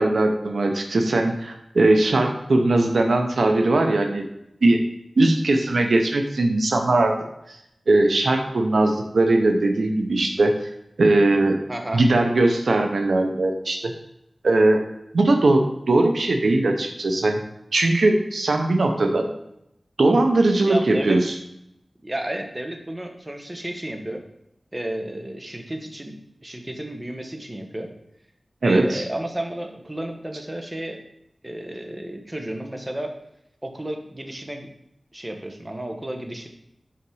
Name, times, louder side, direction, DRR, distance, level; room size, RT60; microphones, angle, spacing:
voice 1, 0.0-4.2 4.6-4.8 5.2-7.2 7.5-7.6 7.9-10.7 11.0-11.6 11.9-13.9 14.4-14.8 15.1-17.4 17.7-19.3 20.0-21.3 28.6-29.0, right 2 dB, 85° right, 4 dB, 0.7 m, -19 dB
voice 2, 11.7-12.0 20.6-21.2 22.0-24.2 24.7-26.1 26.4-27.9 28.6-31.0 31.4-33.1 33.6-34.7 35.1-36.5, right 1 dB, 25° right, 4 dB, 1.2 m, -32 dB
5.8 x 5.1 x 4.7 m, 0.80 s
wide cardioid pair, 45°, 0 cm